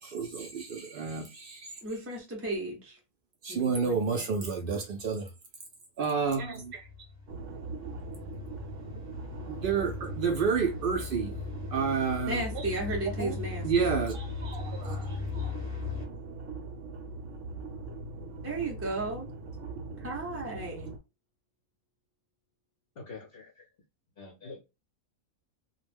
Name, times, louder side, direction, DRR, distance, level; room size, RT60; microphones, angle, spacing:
voice 1, 0.0-1.8 3.4-5.3 6.0-6.9 9.5-11.3 11.7-12.7 13.2-13.4 13.6-15.5, right 5 dB, 80° right, 0.4 m, -30 dB
voice 2, 1.8-3.0 3.5-4.2 12.3-13.9 18.4-19.3 20.0-20.9, right 2 dB, 20° right, 0.4 m, -35 dB
sound 1, 6.5-16.0, left 5 dB, 10° left, 0.9 m, -39 dB
sound 2, 7.3-21.0, right 3 dB, 65° right, 0.9 m, -41 dB
voice 3, 23.0-23.7 24.2-24.6, left 4 dB, 55° left, 0.7 m, -45 dB
2.4 x 2.1 x 3.2 m
omnidirectional pair, 1.5 m